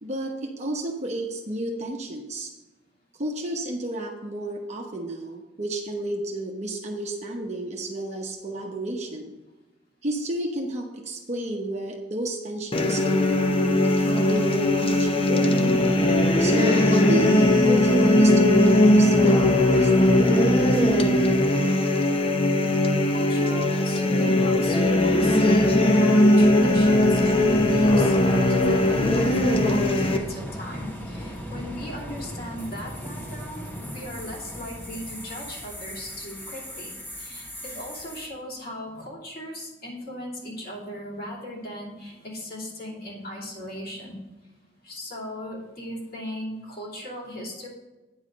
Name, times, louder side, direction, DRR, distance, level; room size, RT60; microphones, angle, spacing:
voice 1, 0.0-2.5 3.2-9.3 10.0-15.6 16.4-21.3, right 1 dB, 40° right, 1 dB, 0.9 m, -31 dB
sound 1, 12.7-30.2, left 1 dB, 30° left, 0.7 m, -19 dB
voice 2, 23.0-44.2 44.8-47.7, equal, 55° left, -5 dB, 3.0 m, -37 dB
sound 2, 26.4-38.3, equal, 10° left, 1.2 m, -38 dB
9.4 x 4.8 x 6.3 m, 1.1 s
head